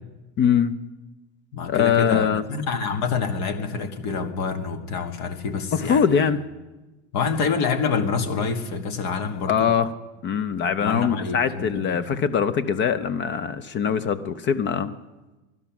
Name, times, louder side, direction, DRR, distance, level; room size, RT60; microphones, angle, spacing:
voice 1, 0.4-0.7 1.7-2.4 5.7-6.4 9.5-9.9 10.2-14.9, left 7 dB, 30° left, 13 dB, 0.6 m, -22 dB
voice 2, 1.5-6.3 7.1-9.7 10.8-12.0, left 5 dB, 50° left, 6 dB, 1.7 m, -27 dB
18.5 x 12.0 x 5.9 m, 1.1 s
supercardioid pair, 145°, 36 cm